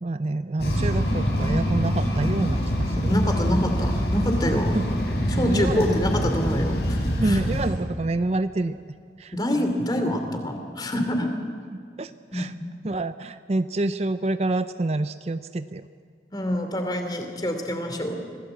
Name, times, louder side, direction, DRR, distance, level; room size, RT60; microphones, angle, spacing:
voice 1, 0.0-3.1 4.7-4.8 5.3-5.8 7.2-8.8 9.2-9.3 11.2-11.3 12.0-12.5 12.8-15.9, right 2 dB, 35° right, 12 dB, 0.5 m, -27 dB
sound 1, 0.6-7.7, equal, 70° left, 5.2 m, -25 dB
voice 2, 3.1-4.8 5.3-7.4 9.3-11.3 12.3-12.5 16.3-18.2, left 1 dB, 25° left, 5 dB, 2.8 m, -26 dB
26.0 x 17.5 x 8.1 m, 2.2 s
head